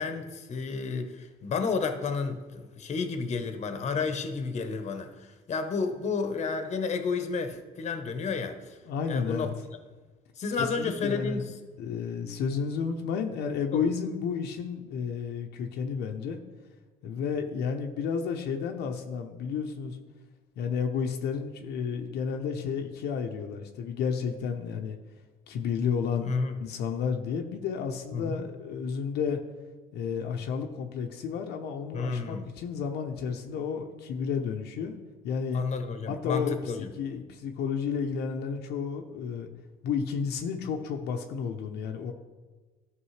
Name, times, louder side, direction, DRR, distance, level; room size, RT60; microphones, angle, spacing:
voice 1, 0.0-8.8 9.1-9.5 10.4-11.5 13.7-13.8 26.2-26.5 28.1-28.5 31.9-32.5 35.5-36.9, left 4 dB, 40° left, 7 dB, 0.9 m, -31 dB
voice 2, 8.9-9.5 10.6-11.4 11.8-16.4 17.0-20.0 20.6-25.0 25.5-26.3 26.6-29.4 29.9-34.9 35.2-35.6 36.1-39.5 39.8-42.1, left 6 dB, 80° left, 3 dB, 0.7 m, -31 dB
12.5 x 5.4 x 3.2 m, 1.3 s
cardioid pair, 110°, 17 cm